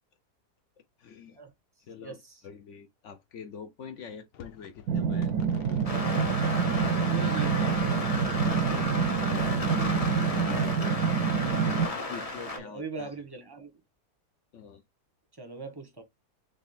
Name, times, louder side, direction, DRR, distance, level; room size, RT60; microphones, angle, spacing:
voice 1, 1.0-1.4 1.9-5.3 8.4-11.0 11.3-13.1 14.5-14.8, left 7 dB, 60° left, 0.8 m, -45 dB
voice 2, 2.0-2.3 7.1-7.9 12.6-13.7 15.4-16.0, right 4 dB, 20° right, 0.7 m, -40 dB
sound 1, 4.3-11.8, left 8 dB, 80° left, 1.3 m, -47 dB
sound 2, 4.9-11.9, right 7 dB, 75° right, 1.0 m, -27 dB
sound 3, 5.8-12.6, left 2 dB, 30° left, 0.8 m, -33 dB
3.6 x 3.5 x 4.1 m
omnidirectional pair, 1.7 m